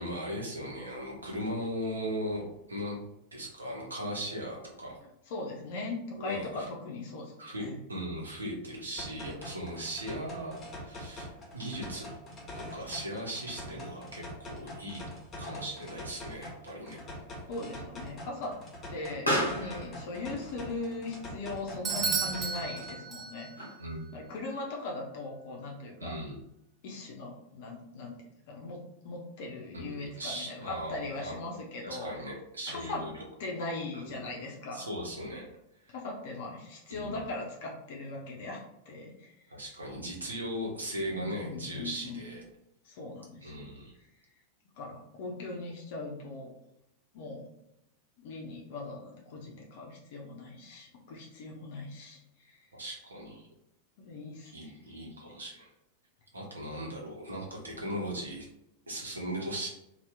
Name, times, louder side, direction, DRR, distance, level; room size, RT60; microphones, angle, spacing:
voice 1, 0.0-3.0 3.3-5.0 6.2-6.7 7.4-12.1 12.5-15.0 15.4-17.0 21.9-22.3 23.8-24.2 26.0-26.4 29.7-31.4 31.8-33.2 33.9-34.2 34.7-35.5 35.8-36.0 36.9-37.1 39.5-42.4 43.4-43.9 52.7-53.5 54.4-55.7 56.3-58.5 58.9-59.7, equal, 75° right, -2 dB, 0.9 m, -38 dB
voice 2, 5.3-7.3 7.6-7.8 17.5-18.6 18.9-23.5 24.1-26.2 26.8-28.2 28.5-32.1 32.7-33.0 33.4-34.9 35.9-39.3 41.1-42.3 42.8-43.7 44.8-46.5 47.1-47.5 48.2-52.2 52.5-52.6 54.0-54.5, left 2 dB, 50° left, -1 dB, 0.6 m, -39 dB
sound 1, 9.0-23.0, left 1 dB, 25° left, 1.0 m, -44 dB
Explosion, 15.1-24.1, equal, 85° left, 0.8 m, -39 dB
Bell / Doorbell, 21.8-23.7, right 6 dB, 25° right, 0.4 m, -33 dB
2.8 x 2.4 x 3.4 m, 0.84 s
figure-of-eight pair, 90°, 0 cm